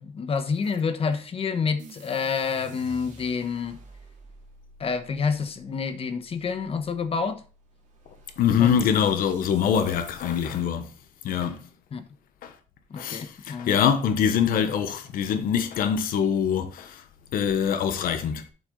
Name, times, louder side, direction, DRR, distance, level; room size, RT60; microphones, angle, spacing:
voice 1, 0.0-3.8 4.8-7.4 8.6-8.7 11.9-12.0 12.9-13.8, left 5 dB, 40° left, 1.2 m, -28 dB
sound 1, 1.8-10.7, right 2 dB, 60° right, 2.7 m, -50 dB
voice 2, 8.4-10.9 11.2-11.7 12.4-12.5 13.0-17.0 17.3-18.5, left 8 dB, 85° left, 1.2 m, -24 dB
7.5 x 5.8 x 4.0 m
cardioid pair, 115°, 14 cm